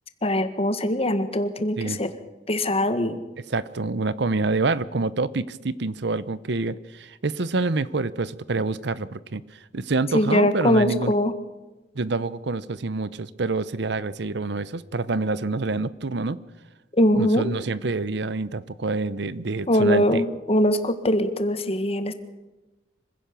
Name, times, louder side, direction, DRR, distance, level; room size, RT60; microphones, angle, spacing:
voice 1, 0.2-2.1 2.5-3.2 10.1-11.3 16.9-17.5 19.7-22.1, left 1 dB, 35° left, 10 dB, 1.7 m, -22 dB
voice 2, 3.5-9.4 9.7-11.1 11.9-16.4 17.1-20.2, right 3 dB, 70° right, 17 dB, 0.8 m, -27 dB
25.5 x 16.5 x 7.0 m, 1.1 s
head